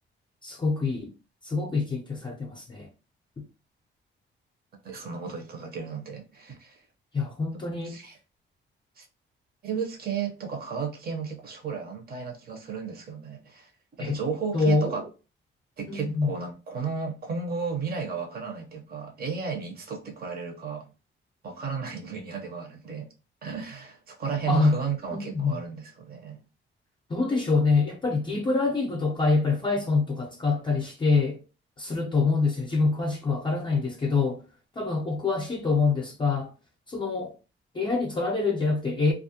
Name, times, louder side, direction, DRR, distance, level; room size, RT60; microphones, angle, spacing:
voice 1, 0.4-1.1 1.4-2.9 3.4-3.5 7.1-8.0 14.0-14.2 14.5-15.0 15.9-16.3 24.5-24.8 25.1-25.6 27.1-31.4 31.8-34.4 34.8-36.5 36.9-37.3 37.7-39.1, left 3 dB, 25° left, 0.4 m, -25 dB
voice 2, 4.8-6.8 7.8-8.2 9.0-9.1 9.6-13.7 14.0-15.0 15.8-20.9 21.4-23.1 23.4-26.4, right 6 dB, 50° right, 0.7 m, -33 dB
2.4 x 2.1 x 2.7 m
cardioid pair, 130°, 20 cm